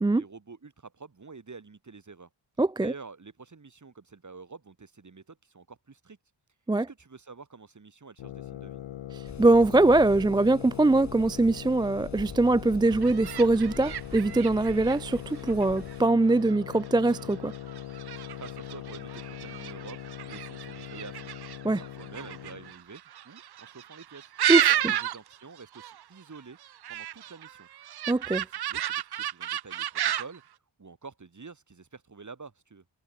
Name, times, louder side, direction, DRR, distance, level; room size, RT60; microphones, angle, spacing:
voice 1, 0.1-2.3 2.8-6.2 6.7-8.8 18.2-21.3 21.6-24.3 24.8-26.6 26.9-27.7 28.5-30.4 30.8-32.8, right 4 dB, 40° right, 2.9 m, -48 dB
voice 2, 2.6-2.9 6.7-6.9 9.1-17.5 21.6-21.8 24.5-24.9 28.1-28.5, right 2 dB, 10° right, 0.4 m, -23 dB
sound 1, 8.2-22.7, left 11 dB, 90° left, 1.1 m, -41 dB
sound 2, 9.2-16.1, left 3 dB, 35° left, 7.9 m, -45 dB
sound 3, 12.9-25.4 25.6-26.0 26.4-30.4, right 11 dB, 60° right, 0.6 m, -32 dB
cardioid pair, 60°, 45 cm